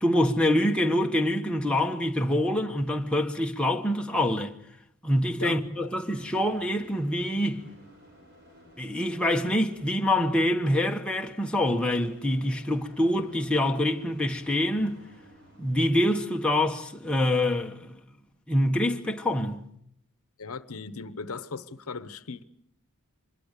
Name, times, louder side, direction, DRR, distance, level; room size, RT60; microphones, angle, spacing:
voice 1, 0.0-4.5 5.0-7.6 8.8-15.0 15.6-18.0 18.5-19.6, left 1 dB, 5° left, 1.3 m, -25 dB
sound 1, 5.1-16.2, equal, 50° right, 6.2 m, -55 dB
voice 2, 5.4-5.9 20.4-22.4, left 4 dB, 75° left, 1.0 m, -38 dB
25.0 x 21.5 x 6.7 m
head